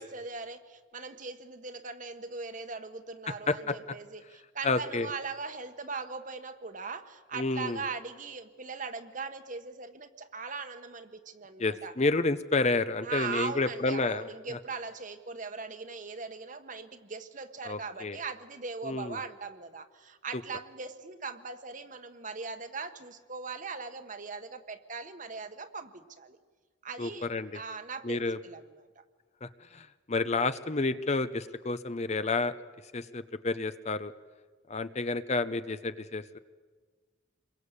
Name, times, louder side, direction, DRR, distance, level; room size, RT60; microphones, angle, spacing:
voice 1, 0.0-11.9 13.0-26.4 26.8-28.9, right 4 dB, 40° right, 9 dB, 1.4 m, -40 dB
voice 2, 4.6-5.1 7.3-7.8 11.6-14.6 17.6-18.2 18.8-19.2 27.0-27.5 28.0-28.4 29.4-32.5 32.9-34.1 34.7-36.4, left 3 dB, 35° left, 12 dB, 0.8 m, -30 dB
28.0 x 22.0 x 8.3 m, 1.5 s
head